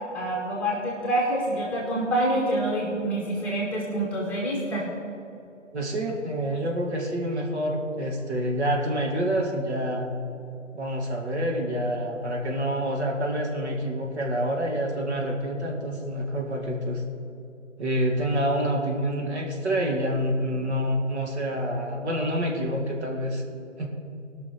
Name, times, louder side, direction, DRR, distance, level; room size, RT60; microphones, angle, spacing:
voice 1, 0.1-4.9, right 1 dB, 5° left, -4 dB, 1.7 m, -26 dB
voice 2, 5.7-10.1 10.7-17.0 17.8-23.4 23.8-23.9, equal, 60° right, 0 dB, 2.5 m, -27 dB
18.5 x 6.2 x 6.1 m, 2.9 s
figure-of-eight pair, 145°, 38 cm